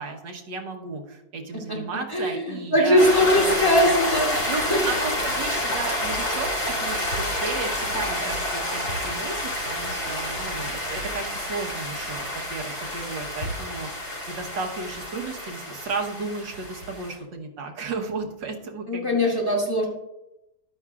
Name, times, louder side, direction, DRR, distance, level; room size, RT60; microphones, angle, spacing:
voice 1, 0.0-4.0 4.3-13.9 14.3-19.4, right 4 dB, 85° right, 1 dB, 1.9 m, -34 dB
voice 2, 2.1-4.3 4.7-4.8 18.9-19.9, left 1 dB, 10° left, -1 dB, 2.2 m, -20 dB
sound 1, 3.0-17.2, left 1 dB, 85° left, 5.4 m, -29 dB
13.5 x 11.0 x 2.4 m, 0.88 s
omnidirectional pair, 1.9 m